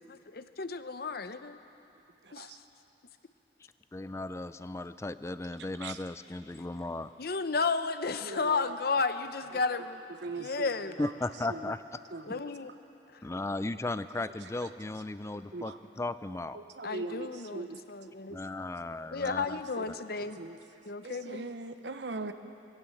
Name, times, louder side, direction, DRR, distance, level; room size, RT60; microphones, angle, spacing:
voice 1, 0.3-1.6 2.3-2.5 7.2-10.0 10.4-11.0 12.2-12.7 16.8-18.4 19.1-20.4 20.8-21.5, left 4 dB, 60° left, 11 dB, 0.8 m, -33 dB
voice 2, 2.2-2.6 5.6-6.0 8.2-8.8 10.2-11.1 11.5-11.7 12.1-12.5 14.5-14.7 15.5-15.8 16.5-17.8 19.8-19.9 20.4-20.6 21.0-22.3, right 3 dB, 80° right, 9 dB, 1.0 m, -40 dB
voice 3, 3.9-7.1 11.0-11.8 13.2-16.6 18.3-19.6 19.9-20.0, left 2 dB, 15° left, 13 dB, 0.4 m, -36 dB
21.5 x 16.5 x 7.8 m, 2.9 s
head